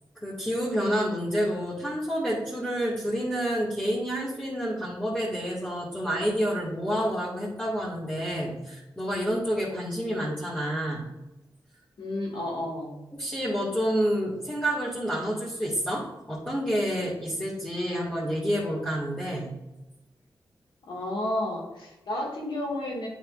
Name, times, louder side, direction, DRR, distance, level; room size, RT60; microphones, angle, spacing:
voice 1, 0.2-11.1 13.2-19.6, equal, 10° left, -8 dB, 2.1 m, -29 dB
voice 2, 12.0-13.0 20.9-23.1, left 1 dB, 80° left, -2 dB, 2.2 m, -31 dB
8.9 x 5.9 x 2.6 m, 0.98 s
cardioid pair, 60°, 8 cm